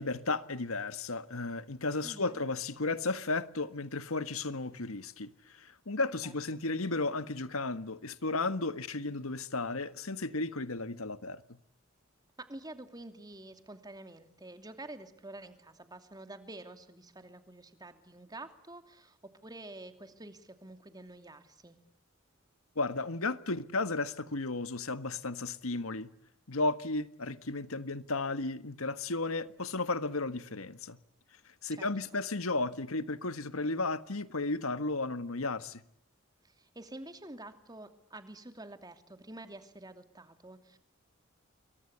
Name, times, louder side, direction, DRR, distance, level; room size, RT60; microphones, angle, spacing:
voice 1, 0.0-5.3 5.6-11.4 22.7-26.1 26.5-31.0 31.6-35.8, left 3 dB, 80° left, 1.6 m, -34 dB
voice 2, 2.0-2.4 6.0-6.3 12.5-21.8 31.7-32.2 36.4-40.8, right 2 dB, 20° right, 2.8 m, -48 dB
29.0 x 23.0 x 8.2 m
head